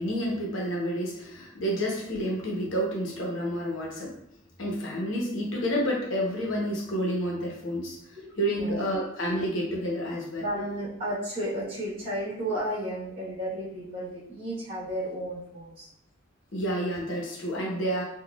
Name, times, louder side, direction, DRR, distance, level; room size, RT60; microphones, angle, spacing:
voice 1, 0.0-4.1 4.6-10.4 16.5-18.0, equal, 70° left, -3 dB, 0.9 m, -29 dB
voice 2, 8.2-8.8 10.4-15.9, right 1 dB, 30° right, -8 dB, 1.2 m, -33 dB
3.9 x 2.4 x 2.4 m, 0.75 s
head